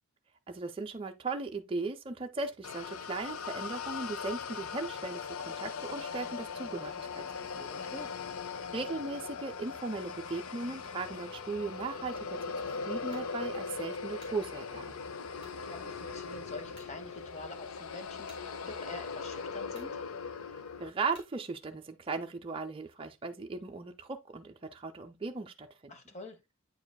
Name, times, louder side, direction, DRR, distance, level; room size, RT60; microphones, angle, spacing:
voice 1, 0.5-7.2 7.6-7.7 8.7-12.2 12.6-15.0 20.8-26.0, right 3 dB, 25° right, 0.5 m, -37 dB
sound 1, 2.6-20.9, left 5 dB, 80° left, 0.6 m, -40 dB
voice 2, 7.7-8.1 15.6-20.0 25.9-26.4, left 2 dB, 35° left, 1.0 m, -46 dB
sound 2, 13.1-13.3 13.9-14.4 15.4-15.6 16.2-16.3 16.7-17.0 18.3-18.5 19.3-19.4 19.7-20.0 21.1-21.4, equal, 55° left, 2.6 m, -56 dB
8.6 x 4.9 x 2.2 m
head